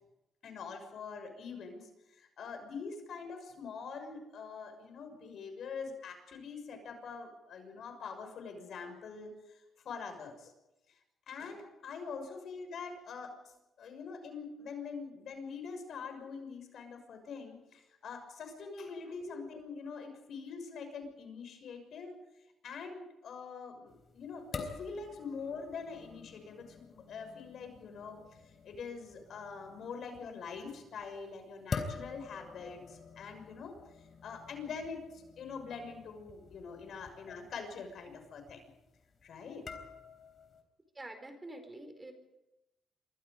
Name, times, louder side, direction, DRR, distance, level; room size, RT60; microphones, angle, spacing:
voice 1, 0.4-10.5 10.9-11.0 11.3-22.2 22.6-33.7 34.2-38.7 39.2-39.6, left 5 dB, 65° left, 6 dB, 6.1 m, -44 dB
sound 1, 23.9-40.6, left 5 dB, 45° left, 3.9 m, -47 dB
voice 2, 40.9-42.1, right 2 dB, 20° right, 7 dB, 4.6 m, -48 dB
27.0 x 23.5 x 5.2 m, 0.93 s
cardioid pair, 90°, 0 cm